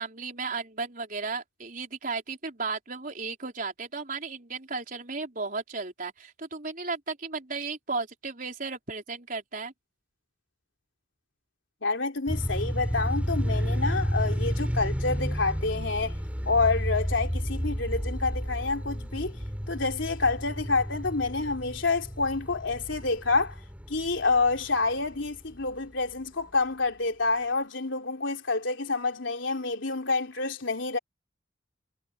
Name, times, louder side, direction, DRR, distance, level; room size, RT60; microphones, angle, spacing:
voice 1, 0.0-9.7, right 4 dB, 45° right, 4.6 m, -34 dB
voice 2, 11.8-16.1 16.4-19.4 19.7-23.6 23.9-31.0, left 3 dB, 80° left, 3.3 m, -28 dB
sound 1, 12.3-25.4, equal, 5° right, 6.8 m, -31 dB
head